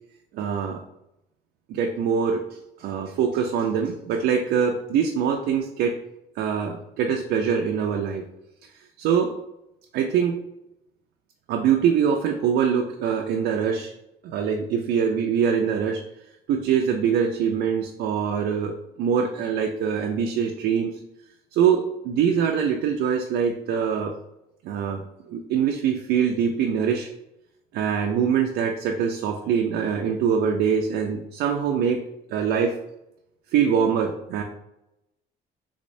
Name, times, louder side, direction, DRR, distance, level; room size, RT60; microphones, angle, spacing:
voice 1, 0.3-0.8 1.7-2.4 2.8-6.0 6.4-8.2 9.0-9.3 9.9-10.4 11.5-13.9 14.2-16.0 16.5-18.7 19.0-20.9 21.5-24.1 24.6-25.0 25.3-27.1 27.7-32.0 32.3-32.7 33.5-34.4, right 7 dB, 75° right, 2 dB, 0.4 m, -23 dB
3.5 x 3.1 x 2.6 m, 0.86 s
cardioid pair, 110°, 17 cm